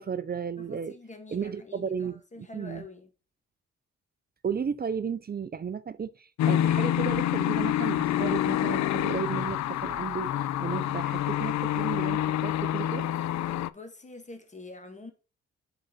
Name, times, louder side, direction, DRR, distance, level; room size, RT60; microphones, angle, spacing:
voice 1, 0.0-0.9 1.3-2.8 4.4-13.1, right 6 dB, 30° right, 0.5 m, -34 dB
voice 2, 0.6-3.1 13.5-15.1, left 3 dB, 25° left, 1.6 m, -46 dB
sound 1, 6.4-13.7, left 12 dB, 70° left, 0.4 m, -27 dB
7.7 x 3.9 x 3.8 m
cardioid pair, 70°, 29 cm